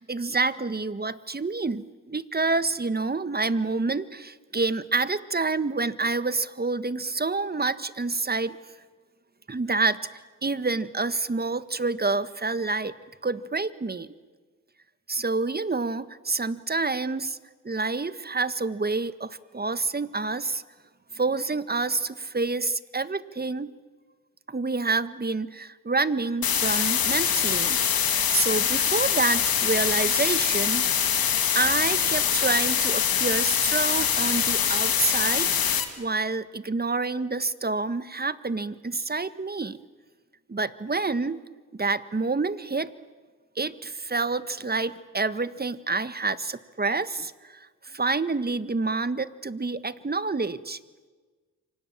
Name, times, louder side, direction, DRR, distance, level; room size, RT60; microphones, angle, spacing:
voice 1, 0.0-8.6 9.5-10.0 10.4-12.9 13.2-14.1 15.1-17.4 17.6-20.6 21.1-23.7 24.5-27.8 28.1-30.9 31.5-39.8 40.5-41.4 41.7-42.9 43.5-50.8, right 3 dB, 25° right, 13 dB, 1.6 m, -28 dB
sound 1, 26.4-35.8, left 8 dB, 70° left, 2.8 m, -24 dB
28.5 x 25.0 x 7.4 m, 1.4 s
supercardioid pair, 45°, 37 cm